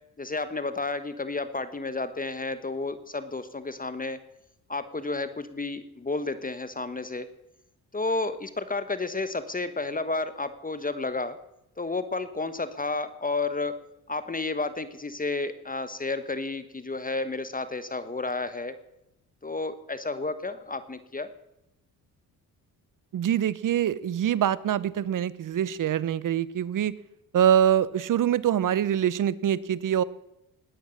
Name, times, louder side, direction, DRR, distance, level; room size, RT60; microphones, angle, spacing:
voice 1, 0.2-4.2 4.7-7.3 7.9-11.4 11.8-13.8 14.1-18.8 19.4-21.3, left 3 dB, 20° left, 12 dB, 1.2 m, -31 dB
voice 2, 23.1-27.0 27.3-30.0, right 10 dB, 55° right, 20 dB, 0.8 m, -24 dB
19.5 x 9.3 x 6.5 m, 0.86 s
cardioid pair, 70°, 38 cm